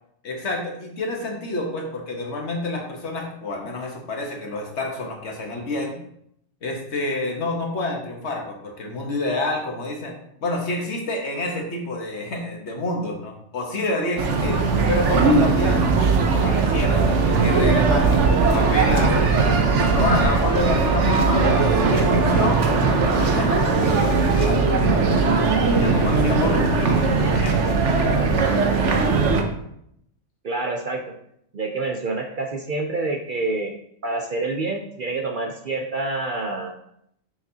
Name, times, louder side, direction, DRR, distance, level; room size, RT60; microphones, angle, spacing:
voice 1, 0.2-6.0 6.6-16.0 16.4-19.4 19.8-21.5 21.8-24.7 25.8-27.7, left 2 dB, 60° left, 1 dB, 1.4 m, -28 dB
sound 1, 14.2-29.4, right 4 dB, 70° right, 1.1 m, -19 dB
voice 2, 30.4-31.1 31.5-33.7 34.0-36.7, right 3 dB, 55° right, 3 dB, 0.6 m, -27 dB
6.6 x 5.8 x 2.8 m, 0.73 s
omnidirectional pair, 1.3 m